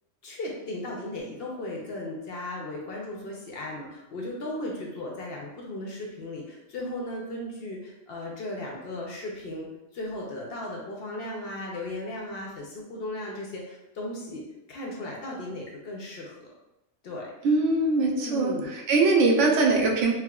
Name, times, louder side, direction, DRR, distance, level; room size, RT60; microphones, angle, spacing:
voice 1, 0.2-9.7 9.9-16.5 17.0-17.3 18.2-18.7, left 1 dB, 60° left, -1 dB, 0.7 m, -36 dB
voice 2, 17.4-20.1, right 3 dB, 75° right, 0 dB, 0.9 m, -22 dB
4.4 x 2.1 x 2.3 m, 0.93 s
omnidirectional pair, 1.3 m